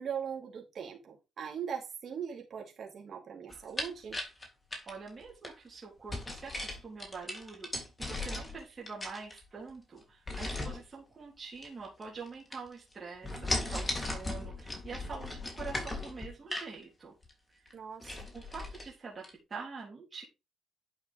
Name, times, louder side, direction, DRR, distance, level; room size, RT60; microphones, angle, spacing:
voice 1, 0.0-4.2 17.7-18.3, right 7 dB, 55° right, 0 dB, 3.4 m, -40 dB
sound 1, 3.5-5.5 6.1-8.6 8.9-9.7 10.3-10.8 11.6-12.3 12.5-12.9 13.2-16.7 17.2-17.3 17.6-17.7 18.0-18.9 19.2-19.3, left 2 dB, 20° left, 3.3 m, -37 dB
voice 2, 4.8-17.1 17.6-17.8 18.3-20.2, right 4 dB, 35° right, -3 dB, 3.3 m, -45 dB
11.0 x 5.6 x 3.7 m, 0.26 s
cardioid pair, 90°, 0 cm